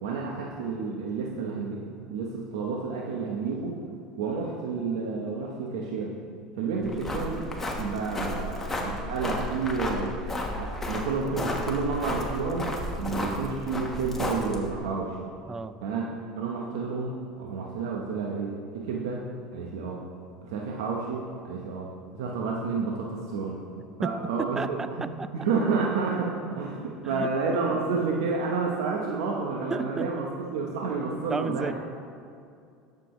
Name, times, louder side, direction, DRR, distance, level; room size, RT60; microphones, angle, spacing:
voice 1, 0.0-3.8 4.2-6.1 6.6-7.4 7.8-10.1 10.5-15.2 15.8-16.1 16.3-19.2 19.5-20.0 20.4-23.6 24.0-25.1 25.3-31.7, right 4 dB, 80° right, -1 dB, 1.0 m, -30 dB
voice 2, 6.7-7.0 15.5-15.8 24.0-25.3 27.0-27.3 29.7-30.2 31.3-31.7, right 4 dB, 20° right, 14 dB, 0.4 m, -33 dB
sound 1, 6.8-14.8, left 1 dB, 15° left, 1.4 m, -33 dB
12.5 x 6.9 x 3.2 m, 2.4 s
supercardioid pair, 100°, 2 cm